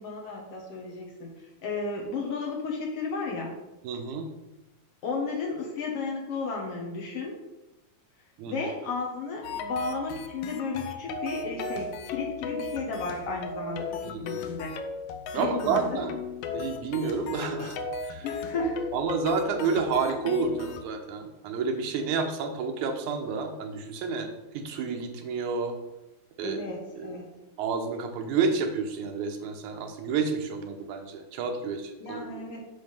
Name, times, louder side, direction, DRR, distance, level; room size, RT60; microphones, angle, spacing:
voice 1, 0.0-3.5 5.0-7.4 8.5-14.7 15.3-16.1 18.2-18.8 26.4-27.3 32.0-32.6, left 4 dB, 60° left, -1 dB, 2.0 m, -33 dB
voice 2, 3.8-4.3 8.4-8.7 14.0-14.4 15.3-16.1 16.5-17.8 18.0-18.3 18.6-24.3 24.5-25.8 26.4-26.6 27.0-27.2 27.6-32.6, right 5 dB, 80° right, 5 dB, 2.3 m, -30 dB
sound 1, 9.4-20.8, left 4 dB, 80° left, 1.3 m, -36 dB
7.3 x 3.8 x 6.5 m, 0.97 s
omnidirectional pair, 3.4 m